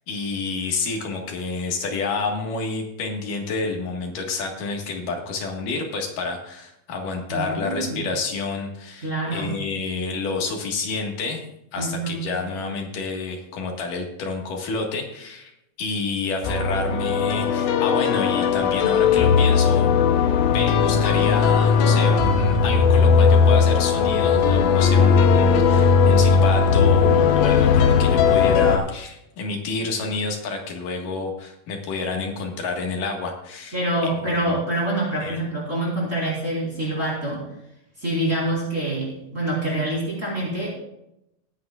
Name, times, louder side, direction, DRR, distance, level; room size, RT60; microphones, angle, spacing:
voice 1, 0.1-11.4 11.7-15.5 15.8-19.9 20.5-33.7 34.0-34.5 35.2-35.4, left 3 dB, 65° left, 1 dB, 3.2 m, -29 dB
voice 2, 7.3-8.1 9.0-9.6 11.8-12.2 33.7-37.4 38.0-40.7, right 1 dB, 20° right, -5 dB, 4.5 m, -26 dB
sound 1, 16.4-28.8, left 6 dB, 85° left, 2.9 m, -17 dB
22.0 x 9.3 x 2.5 m, 0.82 s
omnidirectional pair, 4.1 m